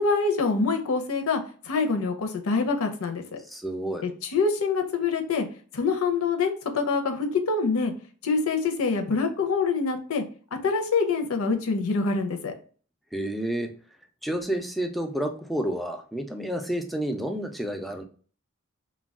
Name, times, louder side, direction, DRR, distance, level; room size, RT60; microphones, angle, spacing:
voice 1, 0.0-1.4 1.7-3.2 4.0-5.5 5.7-7.9 8.2-10.2 10.6-12.5, left 4 dB, 85° left, 5 dB, 0.5 m, -25 dB
voice 2, 3.5-4.0 13.1-13.7 14.2-18.0, right 1 dB, ahead, 4 dB, 0.3 m, -30 dB
2.2 x 2.2 x 3.4 m, 0.42 s
head